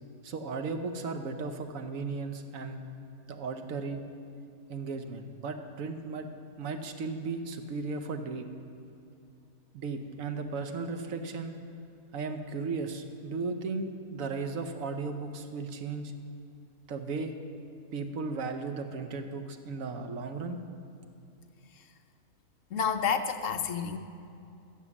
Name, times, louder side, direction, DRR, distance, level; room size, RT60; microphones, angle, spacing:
voice 1, 0.2-2.8 3.3-4.1 4.7-6.3 6.6-8.5 9.7-11.5 12.1-16.2 16.9-17.3 17.9-20.6, right 4 dB, 70° right, 7 dB, 1.2 m, -35 dB
voice 2, 22.7-24.0, left 6 dB, 65° left, 8 dB, 1.0 m, -29 dB
14.5 x 6.6 x 7.1 m, 2.6 s
omnidirectional pair, 1.5 m